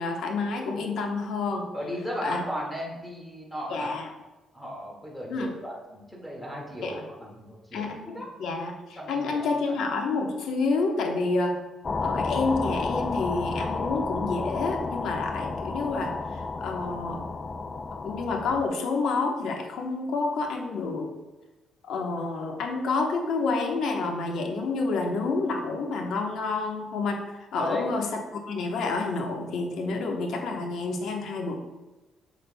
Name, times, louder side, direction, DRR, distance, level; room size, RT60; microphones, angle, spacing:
voice 1, 0.0-1.7 2.2-2.4 3.7-4.0 5.3-5.5 6.8-7.0 7.7-8.1 8.4-8.7 9.1-11.5 12.0-17.2 18.0-21.1 21.9-28.1 28.3-31.5, left 3 dB, 75° left, 2 dB, 1.0 m, -29 dB
voice 2, 1.7-3.9 4.5-7.9 8.1-8.3 9.0-9.8 27.6-27.8, equal, 5° left, -3 dB, 1.8 m, -36 dB
Destruction Blast, 11.8-18.7, left 3 dB, 35° left, 0.4 m, -31 dB
7.1 x 6.1 x 2.2 m, 1.1 s
cardioid pair, 90°, 0 cm